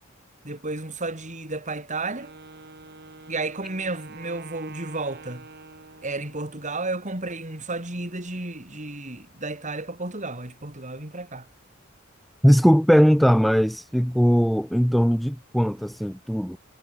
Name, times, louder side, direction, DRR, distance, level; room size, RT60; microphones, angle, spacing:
voice 1, 0.4-2.3 3.3-5.5 6.0-11.5, right 2 dB, 35° right, 5.5 m, -32 dB
Wind instrument woodwind instrument, 1.9-6.8, right 3 dB, 50° right, 4.8 m, -46 dB
voice 2, 12.4-16.6, equal, ahead, 0.6 m, -19 dB
head